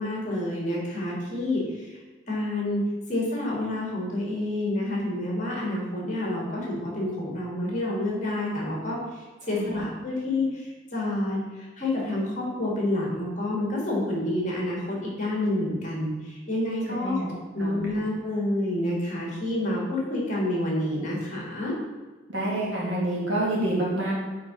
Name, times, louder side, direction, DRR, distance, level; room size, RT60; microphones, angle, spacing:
voice 1, 0.0-2.0 2.3-17.2 17.5-21.8, left 1 dB, 40° left, -3 dB, 1.7 m, -28 dB
voice 2, 16.9-17.3 17.6-17.8 22.3-24.1, right 1 dB, 70° right, -5 dB, 2.0 m, -27 dB
4.7 x 4.6 x 5.0 m, 1.3 s
head